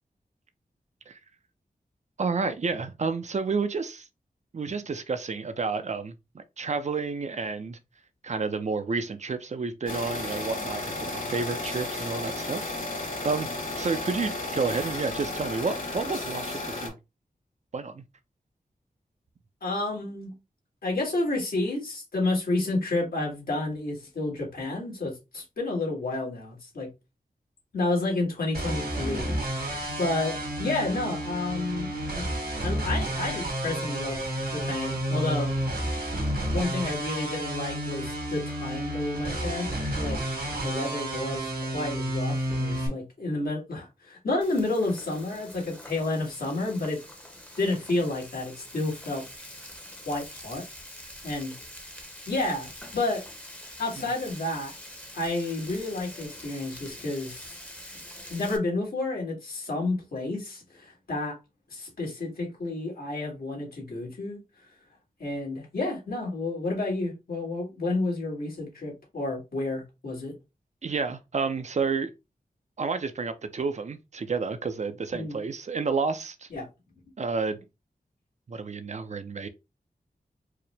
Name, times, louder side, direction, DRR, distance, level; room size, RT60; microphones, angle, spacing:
voice 1, 2.2-4.1 4.5-7.8 8.2-12.7 13.2-13.5 13.8-17.0 17.7-18.0 70.8-72.1 72.8-76.5 77.2-77.6 78.5-79.5, right 4 dB, 50° right, 0.5 m, -30 dB
sound 1, 9.9-16.9, left 2 dB, 60° left, 1.9 m, -33 dB
voice 2, 19.6-20.3 20.8-26.9 27.7-30.3 30.6-32.2 32.6-34.2 34.5-35.5 36.5-40.2 40.6-47.0 47.6-49.2 50.1-50.6 51.2-51.5 52.3-53.2 53.8-54.7 55.1-57.6 58.3-61.4 61.7-64.4 65.2-70.3 75.1-75.4 76.5-76.7, left 2 dB, 80° left, 1.9 m, -30 dB
sound 2, 28.5-42.9, right 1 dB, 80° right, 1.9 m, -31 dB
Frying (food), 44.4-58.6, left 1 dB, 10° left, 0.8 m, -45 dB
4.8 x 2.1 x 3.2 m
wide cardioid pair, 110°, 16 cm